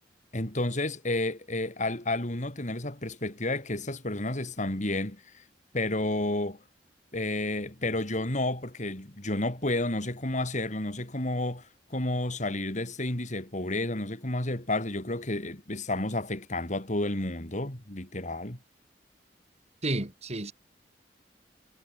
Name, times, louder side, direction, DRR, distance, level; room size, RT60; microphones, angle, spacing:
voice 1, 0.3-5.4 5.7-6.6 7.1-11.6 11.9-18.6, left 2 dB, 45° left, 4.2 m, -31 dB
voice 2, 19.8-20.5, right 2 dB, 40° right, 2.6 m, -31 dB
head